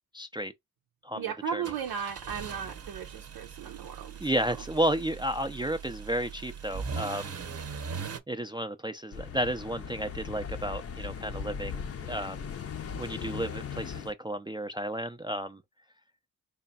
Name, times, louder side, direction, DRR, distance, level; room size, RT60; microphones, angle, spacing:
voice 1, 0.1-0.5 1.0-1.2 1.5-1.6 4.2-7.4 8.3-11.8 12.1-12.5 13.0-15.6, right 1 dB, 15° right, 0.4 m, -32 dB
voice 2, 1.1-4.2, right 7 dB, 90° right, 0.6 m, -36 dB
sound 1, 1.6-8.2, right 5 dB, 40° right, 0.7 m, -40 dB
sound 2, 9.1-14.1, left 7 dB, 40° left, 0.6 m, -38 dB
3.4 x 2.2 x 4.0 m
cardioid pair, 75°, 37 cm